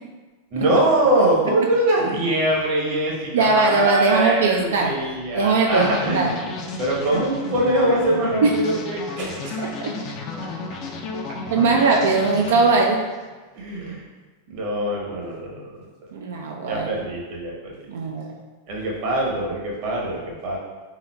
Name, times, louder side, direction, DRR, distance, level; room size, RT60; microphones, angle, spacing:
voice 1, 0.5-6.4 6.8-9.8 13.5-14.0 14.5-15.7 16.7-17.7 18.7-20.6, right 1 dB, 45° right, -3 dB, 0.9 m, -23 dB
voice 2, 3.3-5.0 5.3-5.9 6.1-6.3 8.4-8.6 9.8-10.0 11.5-13.0 16.1-16.9 17.9-18.3, right 3 dB, 60° right, 1 dB, 0.3 m, -20 dB
sound 1, 5.6-13.3, left 3 dB, 40° left, 0.4 m, -33 dB
3.8 x 3.6 x 2.2 m, 1.3 s
figure-of-eight pair, 90°, 0 cm